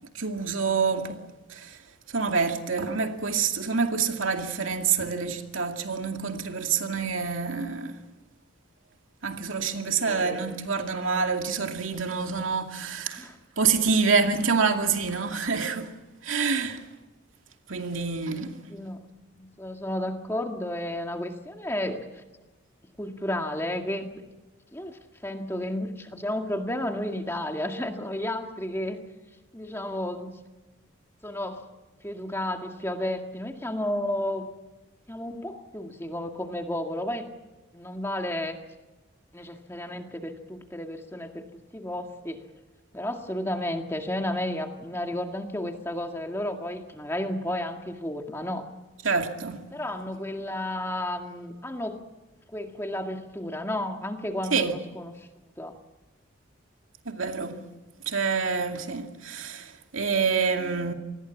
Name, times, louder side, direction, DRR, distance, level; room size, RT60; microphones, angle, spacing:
voice 1, 0.1-1.8 2.1-8.0 9.2-13.3 13.6-15.9 16.2-16.9 17.7-18.6 49.0-49.6 54.5-54.8 57.1-57.6 58.1-60.9, right 5 dB, 85° right, 2.4 m, -27 dB
voice 2, 9.8-10.5 13.2-13.3 18.7-19.0 19.3-22.2 23.0-24.1 24.7-29.0 29.5-30.3 31.2-31.6 32.0-34.5 35.1-37.3 37.7-38.6 39.3-41.5 41.7-42.4 42.9-48.7 49.7-52.0 52.5-55.3 55.6-55.8 57.5-57.8, left 1 dB, 10° left, 1.9 m, -32 dB
27.0 x 20.5 x 7.3 m
head